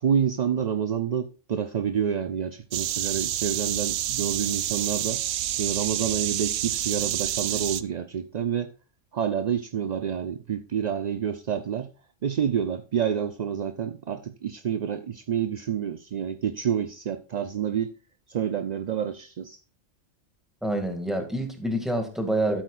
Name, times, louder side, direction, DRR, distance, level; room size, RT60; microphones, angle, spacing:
voice 1, 0.0-5.2 5.6-8.7 9.1-11.9 12.2-17.9 18.3-19.6, right 8 dB, 55° right, 0.4 m, -28 dB
sound 1, 2.7-7.8, right 12 dB, 75° right, 0.9 m, -28 dB
voice 2, 20.6-22.6, right 1 dB, ahead, 2.0 m, -27 dB
12.0 x 8.8 x 2.4 m
omnidirectional pair, 1.3 m